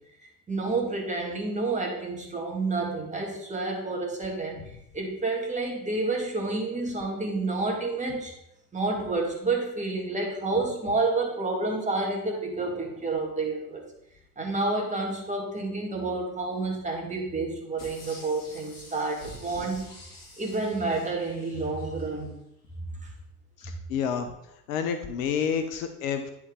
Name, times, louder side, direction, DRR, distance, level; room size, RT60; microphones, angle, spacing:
voice 1, 0.5-4.6 4.9-8.3 8.7-13.8 14.4-19.9 20.4-22.3 23.0-23.1, right 3 dB, 15° right, 0 dB, 1.9 m, -29 dB
sound 1, 17.8-22.2 22.6-22.7, left 1 dB, 45° left, 2.3 m, -47 dB
voice 2, 23.9-24.3 24.7-26.3, left 7 dB, 60° left, 7 dB, 0.9 m, -28 dB
9.8 x 4.6 x 3.7 m, 0.80 s
figure-of-eight pair, 70°, 45 cm